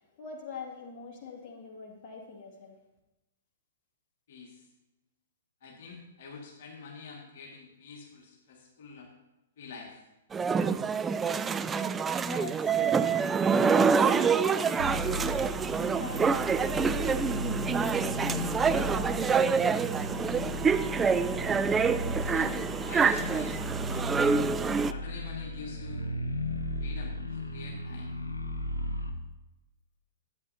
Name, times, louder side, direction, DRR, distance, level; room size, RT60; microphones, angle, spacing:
voice 1, 0.0-2.8 11.7-15.6 16.0-20.5, left 5 dB, 35° left, -2 dB, 2.1 m, -45 dB
voice 2, 4.3-4.7 5.6-9.1 9.6-10.0 22.2-24.1 24.8-26.2 26.8-28.2, left 5 dB, 55° left, -2 dB, 1.9 m, -46 dB
sound 1, 10.3-24.9, right 6 dB, 15° right, 0.3 m, -26 dB
sound 2, 14.8-29.1, left 1 dB, 85° left, 1.0 m, -36 dB
13.0 x 8.8 x 2.8 m, 0.98 s
figure-of-eight pair, 110°, 0 cm